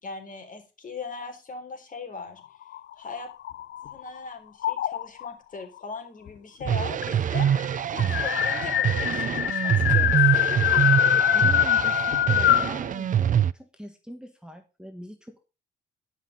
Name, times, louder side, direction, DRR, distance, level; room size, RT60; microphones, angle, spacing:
voice 1, 0.0-2.4 3.0-3.3 3.8-7.5 7.9-10.4, left 4 dB, 40° left, 6 dB, 3.8 m, -39 dB
sound 1, 2.6-4.1 4.6-5.3 6.3-6.4 6.6-6.7 7.0-12.8, left 11 dB, 65° left, 0.6 m, -23 dB
sound 2, 6.6-13.5, right 9 dB, 40° right, 0.5 m, -25 dB
voice 2, 11.3-15.5, equal, 5° right, 5 dB, 1.5 m, -42 dB
11.0 x 5.9 x 5.1 m, 0.31 s
cardioid pair, 90°, 20 cm